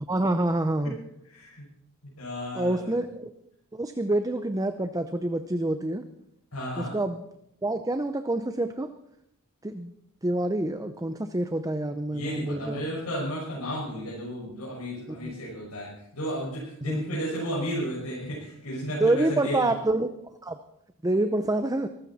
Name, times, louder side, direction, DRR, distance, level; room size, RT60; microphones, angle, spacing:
voice 1, 0.1-1.0 2.5-3.2 3.7-6.0 6.8-7.2 7.6-8.9 9.6-9.9 10.2-12.9 15.2-15.3 16.8-17.2 19.0-20.2 20.4-20.6 21.0-21.9, right 1 dB, 15° right, 9 dB, 0.7 m, -27 dB
voice 2, 1.2-1.6 2.2-2.9 6.5-7.0 12.1-19.7, equal, 90° left, -6 dB, 6.1 m, -33 dB
23.5 x 14.5 x 4.2 m, 0.77 s
head